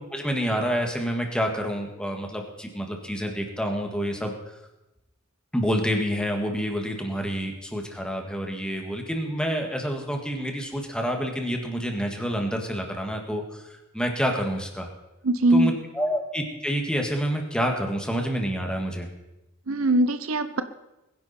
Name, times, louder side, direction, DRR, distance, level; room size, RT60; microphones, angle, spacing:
voice 1, 0.1-4.3 5.5-13.7 13.9-14.9 15.5-19.1, equal, 5° left, 2 dB, 1.9 m, -28 dB
voice 2, 15.2-15.7 19.7-20.6, right 2 dB, 80° right, 11 dB, 0.8 m, -21 dB
21.5 x 10.5 x 4.4 m, 0.96 s
head